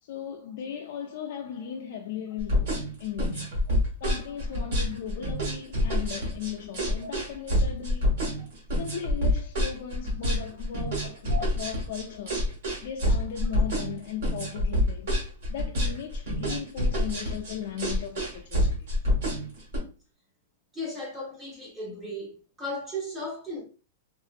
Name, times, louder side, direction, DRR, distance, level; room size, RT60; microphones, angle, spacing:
voice 1, 0.0-3.6 4.0-8.1 8.8-12.4 12.8-15.1 15.5-18.9, left 8 dB, 45° left, 0.3 m, -37 dB
sound 1, 2.4-19.8, left 1 dB, 60° right, 1.4 m, -27 dB
voice 2, 20.7-22.3 22.6-23.6, equal, 10° right, 0.8 m, -35 dB
3.0 x 2.7 x 2.4 m
supercardioid pair, 180°, 0 cm